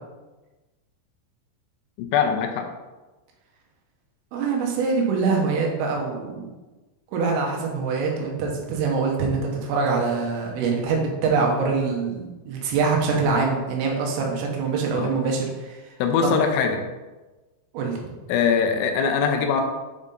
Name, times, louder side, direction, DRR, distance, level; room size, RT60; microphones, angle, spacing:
voice 1, 2.1-2.7 15.0-15.1 16.0-16.8 18.3-19.6, left 6 dB, 90° left, 4 dB, 3.4 m, -22 dB
voice 2, 4.3-6.5 7.1-15.8 16.2-16.3 17.7-18.0, right 4 dB, 85° right, 0 dB, 3.7 m, -24 dB
8.6 x 4.1 x 3.8 m, 1.2 s
omnidirectional pair, 5.7 m